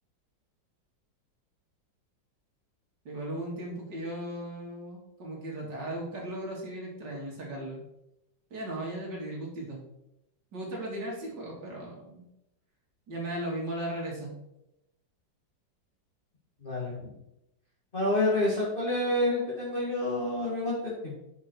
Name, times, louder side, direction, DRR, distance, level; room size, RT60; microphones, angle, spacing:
voice 1, 3.0-7.8 8.5-9.8 10.5-12.2 13.1-14.3, right 1 dB, 65° right, -3 dB, 3.2 m, -37 dB
voice 2, 16.6-17.1 17.9-21.2, left 1 dB, 30° left, -6 dB, 2.0 m, -28 dB
9.3 x 5.5 x 4.6 m, 0.84 s
omnidirectional pair, 2.0 m